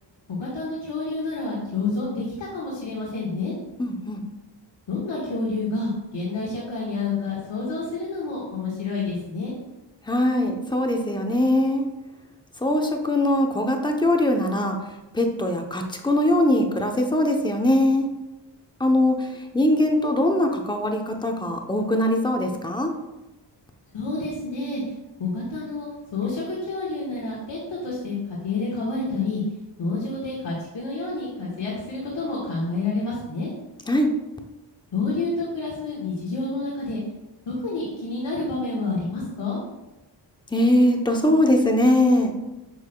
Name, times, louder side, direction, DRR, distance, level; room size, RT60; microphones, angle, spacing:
voice 1, 0.3-3.5 4.9-9.5 23.9-24.8 25.2-28.2 28.4-29.4 29.8-33.5 34.9-37.0 37.4-39.6, left 3 dB, 70° left, -6 dB, 1.6 m, -29 dB
voice 2, 3.8-4.2 10.1-11.9 12.6-14.8 15.1-18.1 18.8-19.3 19.5-22.9 33.9-34.1 40.5-42.3, left 1 dB, 10° left, 3 dB, 0.7 m, -21 dB
8.1 x 6.2 x 2.3 m, 1.0 s
wide cardioid pair, 125°, 45 cm